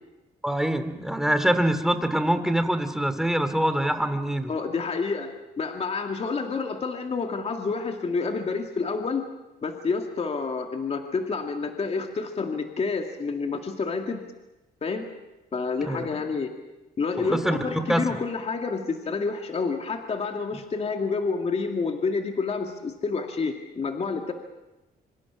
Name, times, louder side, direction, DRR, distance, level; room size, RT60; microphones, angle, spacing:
voice 1, 0.4-4.5 15.8-16.1 17.2-18.1, right 1 dB, 5° right, 9 dB, 2.5 m, -25 dB
voice 2, 4.5-9.3 9.6-14.2 14.8-15.1 15.5-16.5 17.0-24.3, left 4 dB, 40° left, 4 dB, 2.2 m, -29 dB
25.5 x 25.5 x 6.2 m, 1.0 s
cardioid pair, 85°, 16 cm